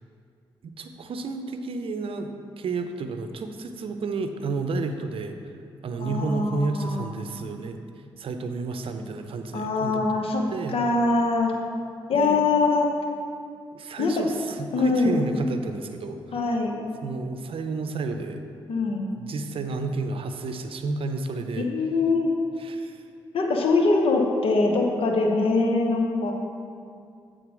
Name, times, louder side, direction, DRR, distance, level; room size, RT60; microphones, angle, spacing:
voice 1, 0.6-5.5 5.8-10.8 12.1-12.4 13.7-16.4 17.0-18.4 19.1-21.7 22.6-23.0, right 3 dB, 65° right, 7 dB, 0.6 m, -31 dB
voice 2, 6.0-7.0 9.5-10.4 10.7-11.5 12.1-12.9 14.0-14.1 14.7-15.2 16.3-16.8 18.7-19.1 21.6-22.3 23.3-26.3, left 3 dB, 70° left, 1 dB, 1.0 m, -23 dB
8.0 x 3.9 x 6.1 m, 2.3 s
cardioid pair, 60°, 10 cm